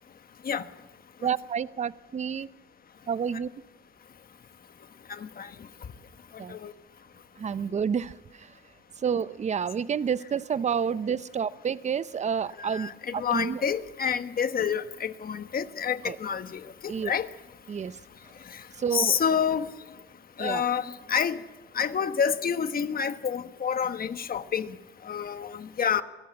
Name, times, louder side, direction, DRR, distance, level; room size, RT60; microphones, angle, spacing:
voice 1, 1.2-2.5 3.1-3.5 6.4-6.5 7.4-8.2 9.0-13.6 16.0-16.2 16.9-17.1 17.7-17.9 18.8-19.2 20.4-20.6, right 7 dB, 35° right, 0.6 m, -29 dB
voice 2, 5.1-5.5 6.5-6.7 12.6-17.3 18.5-18.6 18.9-19.7 20.4-21.4 21.7-24.7 25.0-26.0, left 7 dB, 50° left, 1.2 m, -28 dB
22.0 x 14.0 x 9.5 m
cardioid pair, 90°, 20 cm